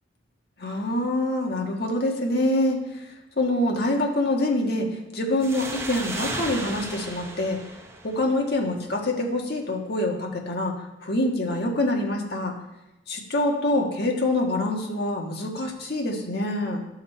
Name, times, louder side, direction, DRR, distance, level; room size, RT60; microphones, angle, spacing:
voice 1, 0.6-2.8 3.4-7.6 8.0-10.7 11.0-12.5 13.1-16.8, left 1 dB, 60° left, 1 dB, 1.5 m, -25 dB
sound 1, 5.4-8.8, right 2 dB, 15° right, 0.9 m, -35 dB
12.0 x 5.7 x 4.4 m, 0.96 s
head